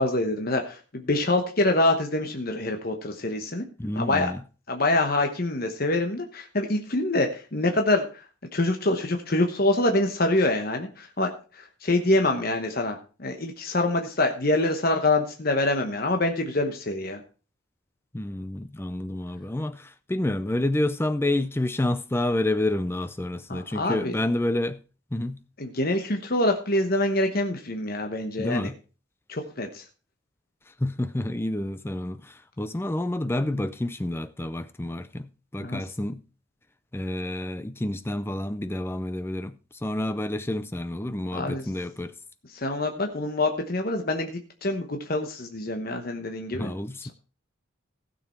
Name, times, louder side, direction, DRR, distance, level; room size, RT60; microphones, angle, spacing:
voice 1, 0.0-3.6 3.9-4.3 4.7-8.2 8.5-17.2 23.5-24.1 25.6-28.7 29.3-29.8 35.6-35.8 41.3-41.7 42.5-46.8, left 2 dB, 45° left, 1.1 m, -25 dB
voice 2, 3.8-4.4 18.1-24.8 25.1-25.4 28.4-28.8 30.8-36.2 36.9-42.1 46.5-47.1, left 1 dB, 10° left, 0.4 m, -29 dB
15.5 x 6.9 x 4.4 m
head